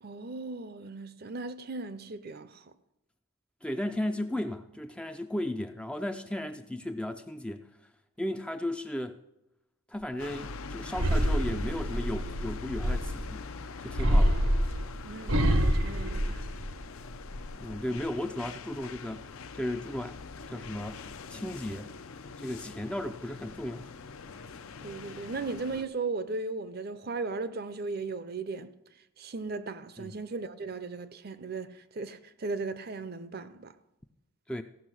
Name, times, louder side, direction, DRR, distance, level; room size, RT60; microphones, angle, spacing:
voice 1, 0.0-2.6 15.0-16.5 24.8-28.7 29.2-33.7, right 3 dB, 45° right, 0.6 m, -37 dB
voice 2, 3.6-7.7 8.2-9.2 9.9-13.4 13.8-14.4 17.6-20.2 20.5-21.0 21.3-21.9 22.4-23.9 30.0-30.2 34.5-34.6, left 1 dB, 5° left, 0.3 m, -35 dB
sound 1, 10.2-25.8, left 4 dB, 70° left, 0.6 m, -43 dB
sound 2, 10.9-13.3 13.9-17.0 17.4-18.0, equal, 85° right, 1.1 m, -27 dB
15.0 x 6.1 x 6.2 m
head